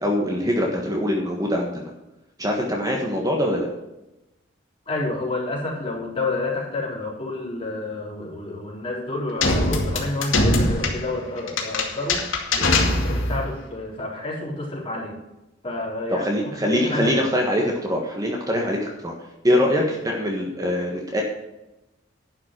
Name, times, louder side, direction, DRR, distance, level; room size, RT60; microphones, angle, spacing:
voice 1, 0.0-1.9 2.4-3.7 16.1-19.1 19.4-21.2, equal, 20° right, 0 dB, 1.5 m, -23 dB
voice 2, 4.9-15.1 15.6-17.3, left 2 dB, 30° left, -4 dB, 3.9 m, -29 dB
sound 1, 9.4-13.5, left 2 dB, 80° left, 2.2 m, -22 dB
11.0 x 5.8 x 7.5 m, 0.96 s
head